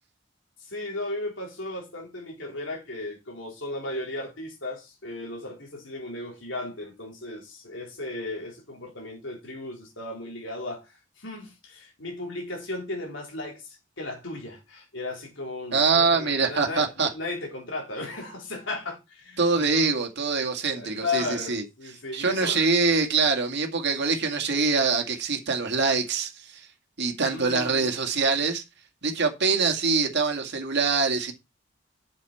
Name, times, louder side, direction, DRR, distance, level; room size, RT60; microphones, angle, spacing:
voice 1, 0.6-20.0 20.7-22.7 27.2-27.9, left 2 dB, 70° left, 3.6 m, -35 dB
voice 2, 15.7-17.1 19.4-21.6 22.1-26.7 27.0-28.6 29.0-31.3, right 4 dB, 60° right, 2.1 m, -24 dB
8.5 x 7.3 x 4.4 m
head